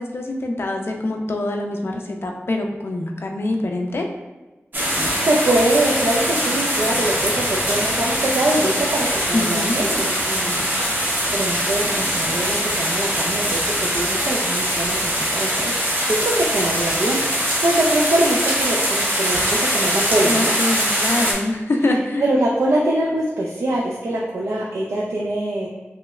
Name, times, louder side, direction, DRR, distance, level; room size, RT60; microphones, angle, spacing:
voice 1, 0.0-4.1 9.3-9.8 20.2-22.2, left 2 dB, 60° left, 2 dB, 0.4 m, -24 dB
sound 1, 4.7-21.3, equal, 45° right, 0.7 m, -22 dB
voice 2, 4.9-20.5 21.9-25.7, right 1 dB, 75° right, -4 dB, 0.4 m, -23 dB
3.0 x 2.9 x 2.3 m, 1.1 s
wide cardioid pair, 85°, 5 cm